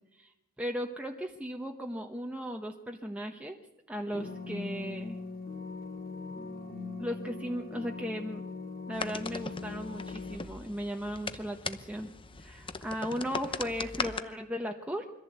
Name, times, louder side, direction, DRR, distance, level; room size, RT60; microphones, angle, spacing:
voice 1, 0.1-3.6 3.9-5.2 7.0-8.4 8.9-15.1, equal, 5° right, 2 dB, 1.0 m, -37 dB
sound 1, 4.1-10.4, left 4 dB, 45° left, 2.3 m, -40 dB
sound 2, 8.9-14.2, left 4 dB, 25° left, 0.9 m, -39 dB
23.5 x 14.5 x 8.2 m, 0.99 s
head